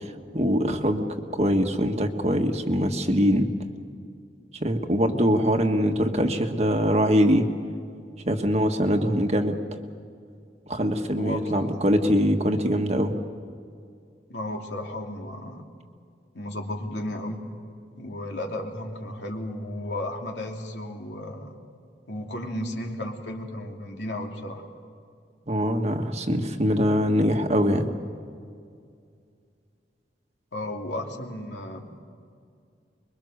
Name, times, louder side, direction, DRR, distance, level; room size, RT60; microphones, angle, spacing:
voice 1, 0.3-1.1 1.3-3.5 4.6-7.5 8.2-9.6 10.7-13.2 25.5-27.9, equal, 40° right, 5 dB, 1.5 m, -23 dB
voice 2, 14.3-15.6 16.3-17.4 18.0-21.5 22.1-24.6 30.5-32.0, left 1 dB, 80° left, 1 dB, 2.8 m, -34 dB
25.0 x 23.0 x 6.6 m, 2.3 s
head